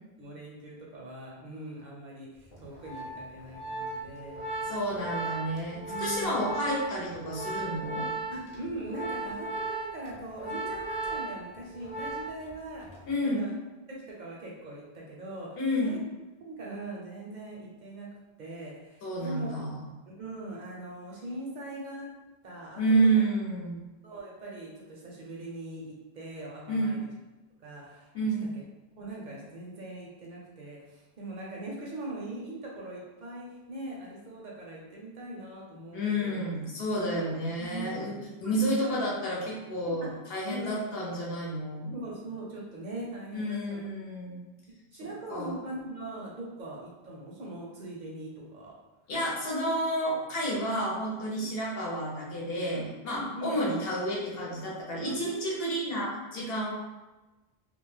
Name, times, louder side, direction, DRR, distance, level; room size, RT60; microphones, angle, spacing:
voice 1, 0.2-5.0 5.9-6.5 8.3-12.8 13.2-13.5 13.9-16.0 16.4-18.1 18.4-19.5 20.1-22.1 22.4-23.2 24.0-27.1 27.6-28.1 28.5-28.6 29.0-36.4 37.2-37.3 37.6-37.9 38.4-39.0 39.8-40.2 40.5-40.8 41.9-43.8 44.9-48.7 51.4-51.5 52.7-53.5 55.0-55.3, right 2 dB, 55° right, -3 dB, 0.6 m, -41 dB
Organ, 2.5-12.5 12.8-13.1, right 3 dB, 40° left, 0.4 m, -36 dB
voice 2, 4.7-8.1 13.1-13.5 15.6-16.0 19.0-19.9 22.8-23.8 26.7-27.0 28.1-28.5 35.9-38.1 38.4-42.0 43.3-44.4 45.3-45.5 49.1-56.7, right 1 dB, 65° left, -4 dB, 0.9 m, -30 dB
2.3 x 2.0 x 3.1 m, 1.1 s
omnidirectional pair, 1.1 m